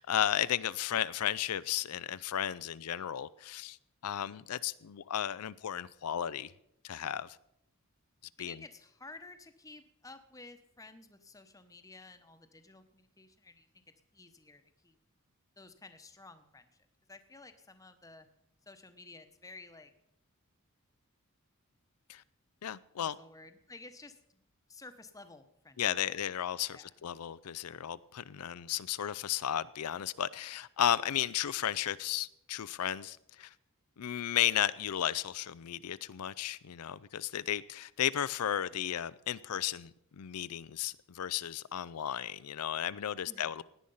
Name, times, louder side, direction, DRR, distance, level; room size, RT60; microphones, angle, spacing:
voice 1, 0.0-3.8 4.0-6.5 6.8-7.4 8.4-8.5 22.1-22.2 22.6-23.2 25.8-33.5 34.0-43.6, left 10 dB, 90° left, 0.5 m, -34 dB
voice 2, 8.4-13.8 14.1-15.0 15.6-16.7 17.1-18.3 18.7-19.9 23.0-24.4 24.7-25.8 26.1-26.2 26.7-26.9 43.2-43.6, left 3 dB, 15° left, 1.0 m, -53 dB
17.0 x 10.0 x 5.5 m
head